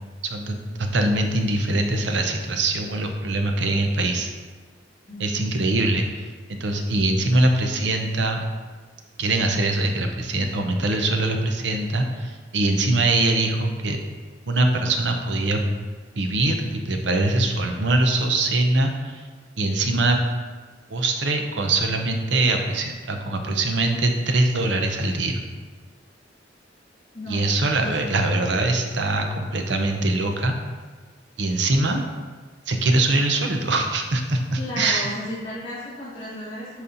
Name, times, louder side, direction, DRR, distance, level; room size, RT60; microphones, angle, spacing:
voice 1, 0.2-4.3 5.2-8.4 9.2-14.0 14.5-15.6 16.2-19.2 19.6-20.2 20.9-25.4 27.3-30.5 31.4-32.0 32.7-35.1, right 2 dB, 70° right, 4 dB, 0.8 m, -23 dB
voice 2, 5.1-5.5 27.1-27.9 34.6-36.8, left 1 dB, 30° left, -12 dB, 2.0 m, -34 dB
10.5 x 4.2 x 2.7 m, 1.4 s
head